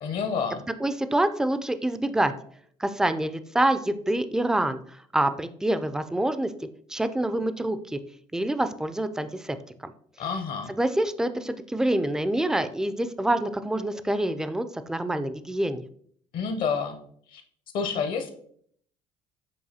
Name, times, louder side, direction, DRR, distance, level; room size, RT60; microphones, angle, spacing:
voice 1, 0.0-0.6 10.2-10.7 16.3-17.0 17.3-17.4 17.7-18.3, left 5 dB, 60° left, 6 dB, 0.7 m, -28 dB
voice 2, 0.8-2.3 2.8-6.5 6.9-8.0 8.3-9.6 9.8-9.9 10.8-15.9, right 1 dB, 5° right, 11 dB, 0.3 m, -26 dB
7.1 x 2.7 x 2.7 m, 0.62 s
supercardioid pair, 80°, 16 cm